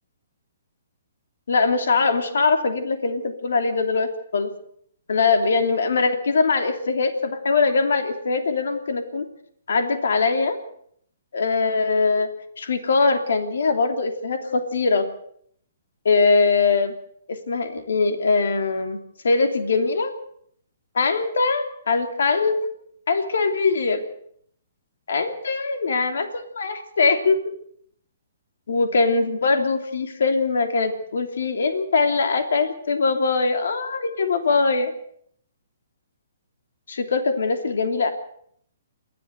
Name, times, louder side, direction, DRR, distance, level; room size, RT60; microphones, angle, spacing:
voice 1, 1.5-4.5 5.1-9.2 9.7-10.6 11.3-12.3 12.6-15.0 16.0-16.9 17.3-19.0 19.2-20.1 20.9-22.6 23.1-24.0 25.1-27.4 28.7-34.9 36.9-38.1, left 4 dB, 75° left, 7 dB, 2.9 m, -22 dB
28.0 x 12.5 x 8.0 m, 0.67 s
hypercardioid pair, 155°, 0 cm